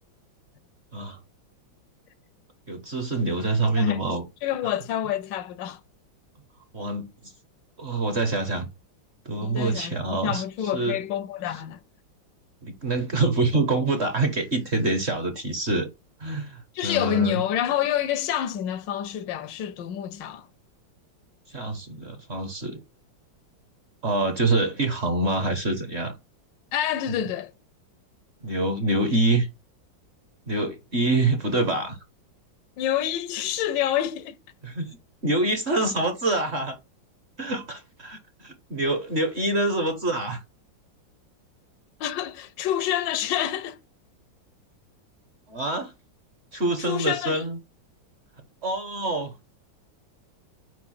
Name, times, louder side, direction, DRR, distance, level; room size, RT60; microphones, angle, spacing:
voice 1, 2.7-4.2 6.7-7.3 7.8-8.7 9.2-10.4 10.7-11.0 11.5-11.6 12.6-15.9 16.2-17.4 21.5-22.8 24.0-26.1 28.4-29.5 30.5-32.0 34.6-34.9 35.2-36.8 37.4-40.4 45.5-45.9 46.5-47.6 48.6-49.3, right 2 dB, 40° right, 1.1 m, -26 dB
voice 2, 4.4-5.8 9.4-11.8 16.7-20.5 26.7-27.5 32.8-34.4 42.0-43.8 46.9-47.4, left 10 dB, 80° left, 1.2 m, -27 dB
5.0 x 4.7 x 4.2 m
omnidirectional pair, 2.1 m